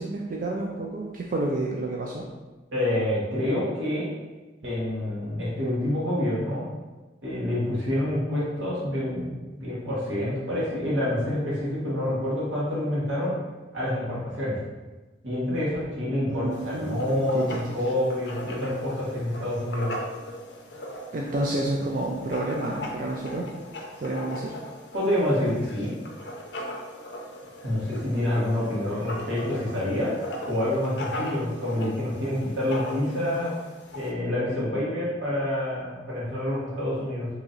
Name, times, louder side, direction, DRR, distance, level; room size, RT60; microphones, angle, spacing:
voice 1, 0.0-2.2 16.3-17.6 21.1-23.5 24.0-24.5, right 2 dB, 45° right, -2 dB, 0.3 m, -29 dB
voice 2, 2.7-4.1 4.6-6.6 7.2-13.3 13.7-14.6 15.2-19.9 24.9-25.9 27.6-33.5 33.9-37.3, left 1 dB, 90° right, -8 dB, 1.4 m, -27 dB
Writing, 16.5-34.1, left 1 dB, 60° left, 0.5 m, -39 dB
2.9 x 2.7 x 3.7 m, 1.2 s
head